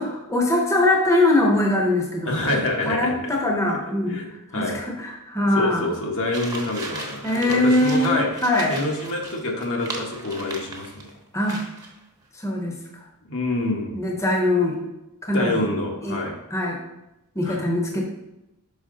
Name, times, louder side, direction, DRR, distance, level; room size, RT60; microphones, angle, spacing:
voice 1, 0.0-2.5 2.8-5.9 7.2-8.8 11.3-11.6 12.4-12.7 13.9-14.8 15.2-15.7 16.0-16.2 16.5-16.8 17.3-18.0, left 1 dB, 15° left, -1 dB, 0.9 m, -22 dB
voice 2, 2.3-3.3 4.1-4.8 5.5-11.2 13.2-14.1 15.3-16.4 17.4-17.6, left 2 dB, 65° left, 0 dB, 1.2 m, -27 dB
sound 1, 6.3-11.1 11.4-11.9, right 2 dB, 15° right, 1.0 m, -36 dB
5.6 x 5.6 x 3.8 m, 0.93 s
head